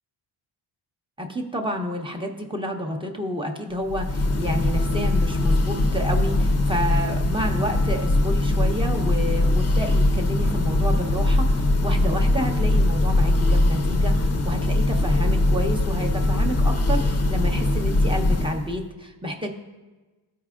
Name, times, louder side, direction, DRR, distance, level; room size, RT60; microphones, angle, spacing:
voice 1, 1.2-19.5, equal, 10° right, 1 dB, 0.8 m, -29 dB
Church bell, 3.8-18.8, left 2 dB, 35° left, 0.6 m, -21 dB
14.0 x 4.7 x 2.4 m, 1.2 s
wide cardioid pair, 105°, 48 cm